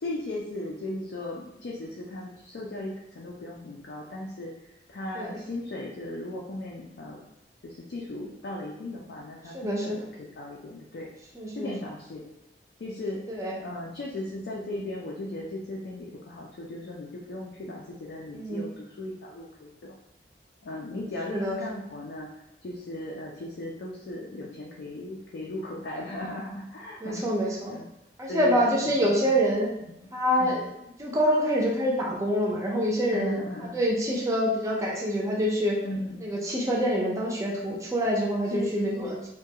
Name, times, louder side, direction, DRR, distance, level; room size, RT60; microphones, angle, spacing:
voice 1, 0.0-7.2 7.6-11.1 11.5-12.2 12.8-13.2 13.6-20.0 20.6-22.3 22.6-27.9 28.3-29.3 29.8-30.1 30.4-30.7 33.1-33.8 35.8-36.2 38.4-39.3, left 1 dB, 70° left, -3 dB, 0.4 m, -37 dB
voice 2, 9.5-10.0 11.4-11.7 13.3-13.5 18.3-18.7 21.3-21.6 27.0-27.7 28.2-29.7 30.1-30.6 31.0-35.8 36.2-39.2, equal, 20° right, -2 dB, 0.4 m, -26 dB
2.3 x 2.2 x 2.7 m, 0.88 s
head